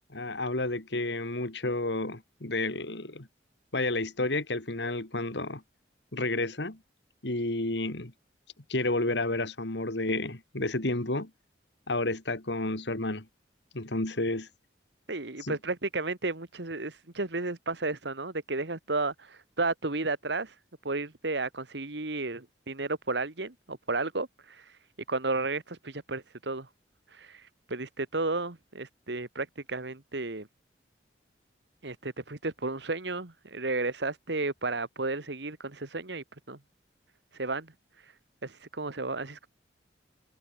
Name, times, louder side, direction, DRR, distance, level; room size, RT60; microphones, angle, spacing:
voice 1, 0.1-3.3 3.7-5.6 6.1-6.8 7.2-8.1 8.7-11.3 11.9-13.3 13.7-14.5 15.4-15.6, left 2 dB, 70° left, 2.5 m, -31 dB
voice 2, 15.1-20.5 20.8-24.8 25.1-26.7 27.1-30.5 31.8-36.6 37.3-37.7 38.0-38.1 38.4-39.5, right 3 dB, 70° right, 1.8 m, -33 dB
head